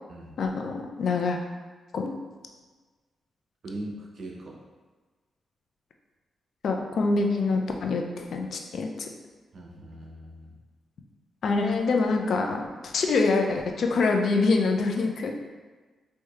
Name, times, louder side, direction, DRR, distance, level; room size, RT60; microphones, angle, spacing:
voice 1, 0.4-1.4 1.9-2.1 6.6-9.1 11.4-15.3, left 3 dB, 65° left, 3 dB, 0.4 m, -25 dB
voice 2, 3.6-4.6 9.5-10.6, right 1 dB, 55° right, -1 dB, 0.7 m, -40 dB
4.5 x 2.7 x 2.3 m, 1.3 s
cardioid pair, 80°, 0 cm